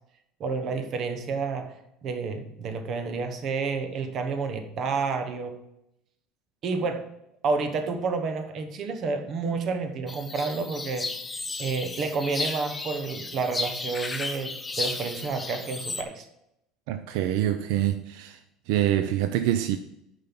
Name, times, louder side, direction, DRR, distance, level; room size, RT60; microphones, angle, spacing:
voice 1, 0.4-1.7 2.0-5.6 6.6-7.1 7.4-11.1 11.6-16.3, right 4 dB, 35° right, 1.0 m, -30 dB
sound 1, 10.1-16.0, left 3 dB, 10° left, 0.6 m, -34 dB
voice 2, 16.9-18.4 18.7-19.8, right 12 dB, 70° right, 0.5 m, -25 dB
9.0 x 5.4 x 5.9 m
cardioid pair, 170°, 0 cm